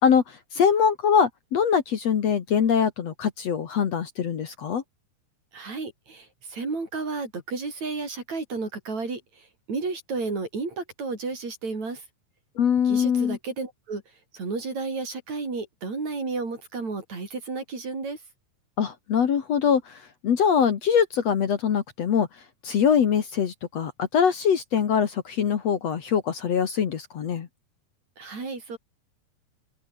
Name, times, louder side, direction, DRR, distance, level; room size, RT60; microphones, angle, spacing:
voice 1, 0.0-4.8 12.6-13.4 18.8-20.0 20.2-22.3 22.6-27.5, left 7 dB, 55° left, 2.6 m, -23 dB
voice 2, 5.5-9.2 9.7-12.0 12.9-14.0 14.3-18.2 28.2-28.8, right 4 dB, 55° right, 7.2 m, -32 dB
omnidirectional pair, 3.9 m